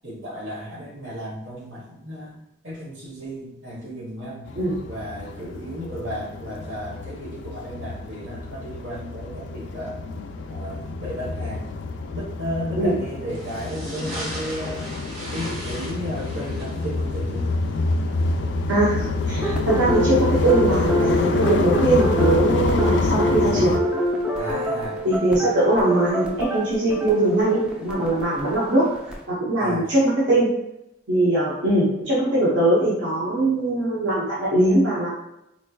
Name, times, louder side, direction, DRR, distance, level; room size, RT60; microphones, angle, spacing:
voice 1, 0.0-2.4 2.6-4.5 4.9-10.0 10.5-11.7 12.1-14.8 15.3-17.5 24.4-25.0 29.6-29.8, equal, 85° right, -3 dB, 1.1 m, -34 dB
sound 1, 4.5-23.8, left 3 dB, 65° left, 0.3 m, -27 dB
sound 2, 13.3-19.3, equal, 50° right, 1.2 m, -38 dB
voice 2, 18.7-23.7 25.0-28.9 29.3-30.0 30.3-30.5 31.1-35.1, right 1 dB, 70° right, -7 dB, 0.9 m, -21 dB
sound 3, 19.4-29.2, equal, 5° right, 0.4 m, -26 dB
3.9 x 3.2 x 2.3 m, 0.86 s
head